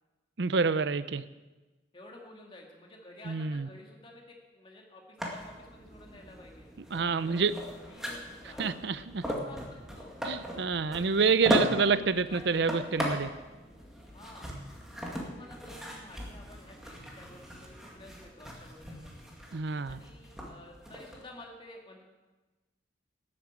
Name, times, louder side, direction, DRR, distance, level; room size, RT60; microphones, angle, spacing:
voice 1, 0.4-1.2 3.2-3.7 6.9-7.5 8.6-9.2 10.2-13.3 19.5-20.0, right 5 dB, 60° right, 14 dB, 0.6 m, -27 dB
voice 2, 1.9-6.7 7.3-8.7 9.4-10.1 11.5-11.6 11.9-13.2 14.1-14.5 15.2-19.2 19.9-22.0, left 1 dB, 25° left, 0 dB, 2.3 m, -51 dB
sound 1, 5.2-21.2, equal, 5° right, 2.1 m, -38 dB
13.0 x 8.7 x 8.3 m, 1.2 s
head